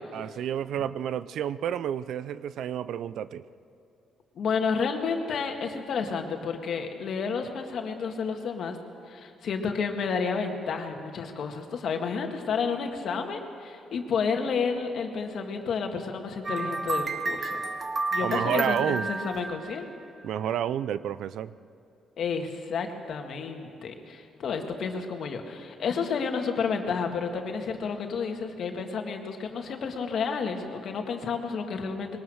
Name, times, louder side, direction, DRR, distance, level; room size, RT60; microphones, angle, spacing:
voice 1, 0.1-3.5 18.2-19.1 20.2-21.5, right 10 dB, 75° right, 16 dB, 0.5 m, -30 dB
voice 2, 4.4-8.8 9.1-17.6 18.1-19.9 22.2-32.2, left 5 dB, 65° left, 4 dB, 2.0 m, -31 dB
sound 1, 16.4-20.2, right 3 dB, 40° right, 1.8 m, -31 dB
22.0 x 19.0 x 6.4 m, 2.6 s
cardioid pair, 90°, 0 cm